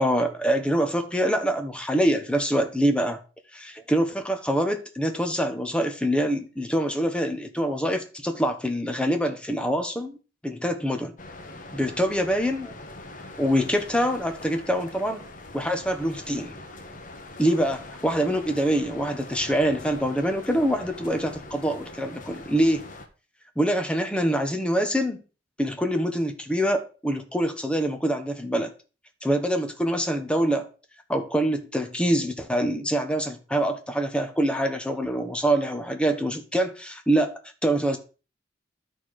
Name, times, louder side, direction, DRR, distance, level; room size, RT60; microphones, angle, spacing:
voice 1, 0.0-3.2 3.5-10.2 10.4-11.1 11.7-12.7 13.4-15.2 15.5-16.6 17.4-22.9 23.6-25.2 25.6-28.7 29.2-30.7 31.1-38.0, equal, 5° left, 1.1 m, -25 dB
sound 1, 11.2-23.1, left 2 dB, 45° left, 1.2 m, -42 dB
12.0 x 4.5 x 4.8 m
head